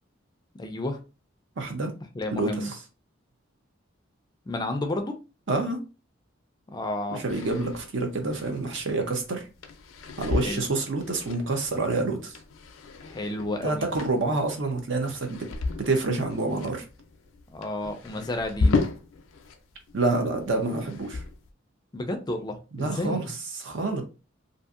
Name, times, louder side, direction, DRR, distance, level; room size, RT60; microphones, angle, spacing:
voice 1, 0.6-1.0 2.1-2.7 4.5-5.2 6.7-7.2 10.4-10.6 13.1-13.9 17.5-18.8 21.9-23.3, left 1 dB, 20° left, 0.4 m, -31 dB
voice 2, 1.6-1.9 2.3-2.7 5.5-5.8 7.1-9.4 10.2-12.4 13.6-15.5 15.8-16.8 19.9-21.2 22.8-23.3 23.6-24.0, right 3 dB, 65° right, 0.7 m, -27 dB
sound 1, 7.3-19.6 19.9-21.5, left 3 dB, 85° left, 0.5 m, -33 dB
2.6 x 2.6 x 2.4 m
head